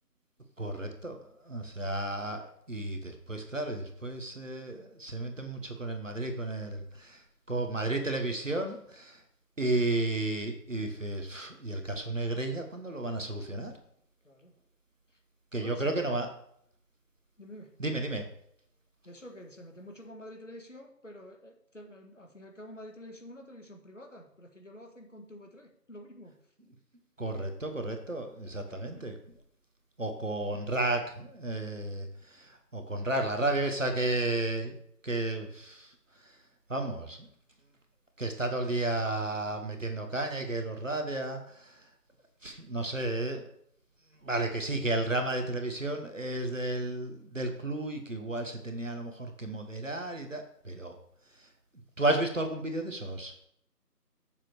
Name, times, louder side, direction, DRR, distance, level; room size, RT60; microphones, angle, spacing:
voice 1, 0.6-9.2 9.6-13.8 15.5-16.3 17.8-18.3 27.2-29.2 30.0-34.8 35.0-35.9 36.2-36.4 36.7-37.3 38.2-41.9 42.4-43.5 44.2-51.0 51.4-51.5 52.0-53.3, right 2 dB, 50° right, 5 dB, 1.5 m, -33 dB
voice 2, 14.2-14.6 15.1-15.2 15.6-16.1 17.4-17.8 19.0-26.4 28.7-29.2, equal, 50° left, 2 dB, 1.7 m, -49 dB
7.0 x 6.0 x 6.6 m, 0.68 s
figure-of-eight pair, 170°, 48 cm